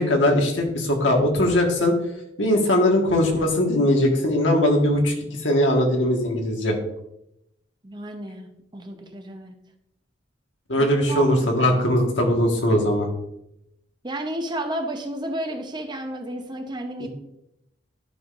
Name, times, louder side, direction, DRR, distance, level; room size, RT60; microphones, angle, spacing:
voice 1, 0.0-1.9 2.4-5.1 5.4-6.8 10.7-13.1 17.0-17.1, left 1 dB, 90° left, 1 dB, 1.5 m, -20 dB
voice 2, 7.8-9.5 10.8-11.8 14.0-17.1, right 1 dB, 25° right, 5 dB, 0.7 m, -32 dB
11.0 x 5.7 x 2.5 m, 0.82 s
head